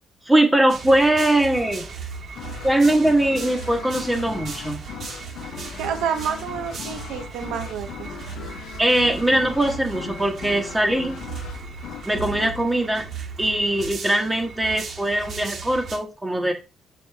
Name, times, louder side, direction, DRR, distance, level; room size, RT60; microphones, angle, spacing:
voice 1, 0.2-1.9 2.6-4.8 8.8-11.2 12.1-13.0 13.4-16.5, right 1 dB, 15° right, 2 dB, 1.2 m, -21 dB
sound 1, 0.7-16.0, right 5 dB, 60° right, 1.6 m, -37 dB
sound 2, 2.4-13.8, left 8 dB, 85° left, 0.9 m, -39 dB
voice 2, 5.8-8.1, right 7 dB, 90° right, 7 dB, 0.8 m, -29 dB
6.3 x 4.8 x 3.4 m, 0.30 s
cardioid pair, 90°, 0 cm